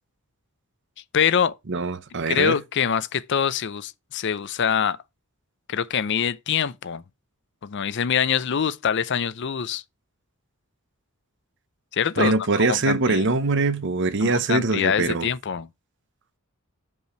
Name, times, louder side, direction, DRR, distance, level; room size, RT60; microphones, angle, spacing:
voice 1, 1.1-1.5 2.3-5.0 5.7-7.0 7.6-9.8 11.9-13.2 14.2-15.7, left 7 dB, 55° left, 0.5 m, -24 dB
voice 2, 1.7-2.6 12.2-15.3, right 3 dB, 55° right, 0.7 m, -23 dB
5.4 x 4.9 x 5.8 m
head